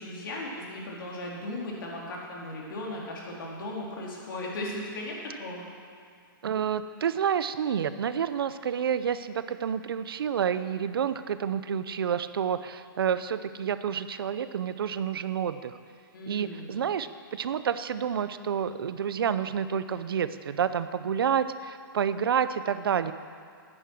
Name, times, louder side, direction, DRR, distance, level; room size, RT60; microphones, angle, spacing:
voice 1, 0.0-5.7 16.1-16.8, left 1 dB, 65° left, -3 dB, 3.4 m, -37 dB
voice 2, 6.4-15.8 16.3-23.1, right 8 dB, 85° right, 13 dB, 0.6 m, -29 dB
9.9 x 9.8 x 6.1 m, 2.3 s
hypercardioid pair, 165°, 12 cm